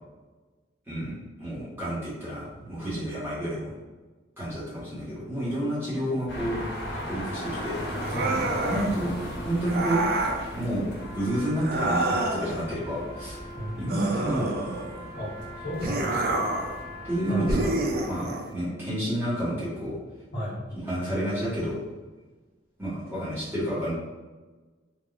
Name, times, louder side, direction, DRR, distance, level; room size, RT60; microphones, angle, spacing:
voice 1, 0.9-3.7 4.4-6.6 6.9-7.8 8.6-9.1 9.4-10.0 10.5-13.4 13.8-14.5 17.0-17.8 18.0-20.0 20.8-21.9 22.8-23.9, right 1 dB, 15° right, -10 dB, 1.1 m, -30 dB
sound 1, 6.3-18.2, equal, 90° left, 0.9 m, -38 dB
sound 2, 8.0-8.9 9.7-10.4 11.6-12.6 13.9-15.0 15.8-16.7 17.5-18.5, right 2 dB, 55° right, 0.3 m, -28 dB
voice 2, 8.1-8.6 13.5-14.3 15.1-15.3 15.6-16.5 17.3-17.8 20.3-20.6, equal, 70° left, -10 dB, 1.0 m, -34 dB
Trumpet, 11.0-18.0, left 2 dB, 15° left, 0.6 m, -44 dB
3.4 x 2.3 x 2.3 m, 1.3 s
head